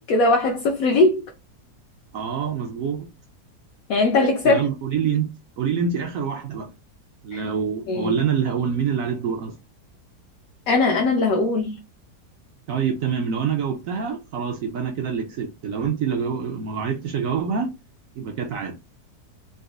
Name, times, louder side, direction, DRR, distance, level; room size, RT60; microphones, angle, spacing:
voice 1, 0.1-1.2 3.9-4.6 7.3-7.4 7.9-8.1 10.7-11.8, left 2 dB, 70° left, 0.9 m, -20 dB
voice 2, 2.1-3.1 4.4-5.3 5.6-6.7 7.2-9.5 12.7-17.7 18.1-18.8, right 6 dB, 70° right, 0.9 m, -26 dB
3.9 x 2.4 x 2.4 m
omnidirectional pair, 1.7 m